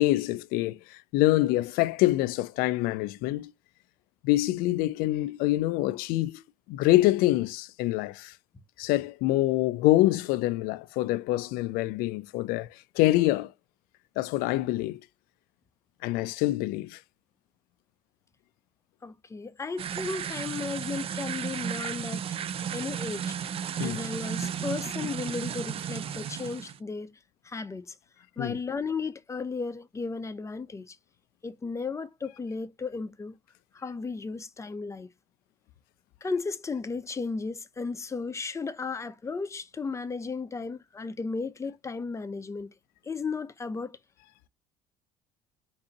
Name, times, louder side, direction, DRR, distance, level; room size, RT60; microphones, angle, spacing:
voice 1, 0.0-3.5 4.2-6.4 6.7-8.3 8.8-13.5 14.2-15.0 16.0-17.0 23.8-24.0 28.4-28.6, left 17 dB, 75° left, 0.4 m, -25 dB
voice 2, 19.0-22.2 22.7-23.4 23.7-27.2 27.4-27.9 28.4-31.0 31.4-33.4 33.7-35.1 36.2-42.7 43.0-44.0, left 4 dB, 20° left, 0.6 m, -34 dB
sound 1, 19.8-26.8, right 8 dB, 40° right, 0.4 m, -34 dB
3.8 x 2.7 x 4.0 m
cardioid pair, 100°, 15 cm